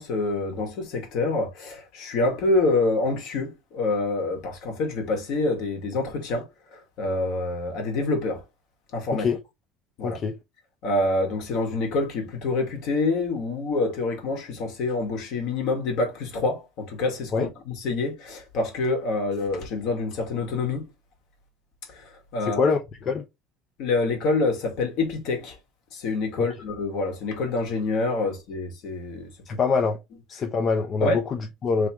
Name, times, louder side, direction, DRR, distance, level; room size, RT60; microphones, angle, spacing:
voice 1, 0.0-6.5 6.7-8.4 8.9-9.2 10.0-10.2 10.8-20.9 21.9-22.7 23.8-25.6 25.9-29.6 31.0-31.2, left 2 dB, 60° left, 1.8 m, -26 dB
voice 2, 10.0-10.4 17.3-17.5 22.4-23.2 26.4-26.5 29.5-30.0 30.3-31.9, left 5 dB, 30° left, 0.5 m, -24 dB
3.3 x 3.1 x 3.5 m
cardioid pair, 155°, 0 cm